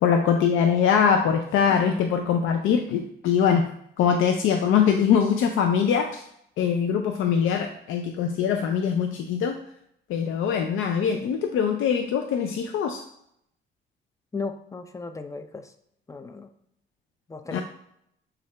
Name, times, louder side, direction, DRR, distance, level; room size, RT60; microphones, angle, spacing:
voice 1, 0.0-3.7 4.0-6.2 6.6-9.6 10.1-13.0 17.5-17.6, left 7 dB, 85° left, 4 dB, 0.5 m, -22 dB
voice 2, 14.3-15.7 16.1-16.5 17.3-17.6, left 4 dB, 15° left, 8 dB, 0.5 m, -35 dB
6.3 x 2.4 x 3.3 m, 0.72 s
cardioid pair, 90°, 20 cm